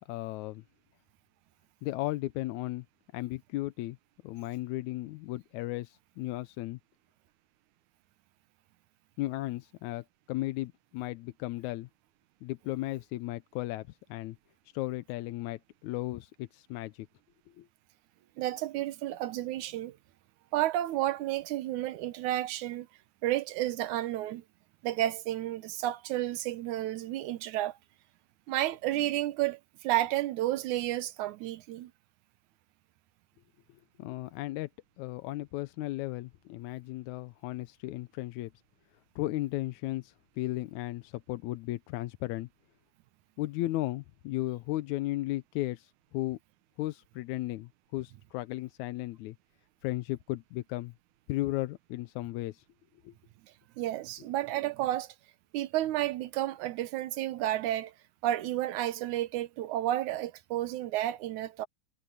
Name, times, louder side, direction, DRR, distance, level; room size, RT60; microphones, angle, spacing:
voice 1, 0.1-0.6 1.8-2.9 3.1-4.0 4.2-6.8 9.2-11.9 12.4-14.4 14.7-17.1 17.6-17.7 33.7-34.7 35.0-38.5 39.2-42.5 43.4-46.4 46.8-49.4 49.8-50.9 51.3-52.6 53.0-53.1, left 17 dB, 90° left, 2.0 m, -35 dB
voice 2, 18.4-20.0 20.5-22.9 23.2-24.4 24.8-27.8 28.5-31.9 53.8-55.1 55.5-57.9 58.2-61.7, right 14 dB, 90° right, 2.4 m, -31 dB
omnidirectional pair, 3.4 m